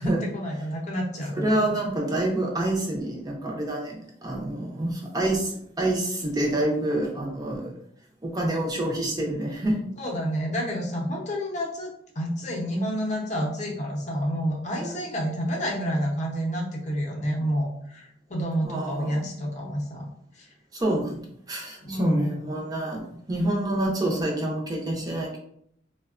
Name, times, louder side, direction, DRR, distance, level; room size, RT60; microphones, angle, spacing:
voice 1, 0.0-1.7 10.0-20.1 20.3-20.5 21.8-22.3, equal, 40° left, -1 dB, 0.6 m, -29 dB
voice 2, 1.3-7.7 8.2-9.9 14.8-14.9 18.6-19.3 20.7-21.2 21.5-25.4, right 1 dB, 20° right, -1 dB, 0.5 m, -27 dB
3.4 x 2.1 x 2.4 m, 0.70 s
head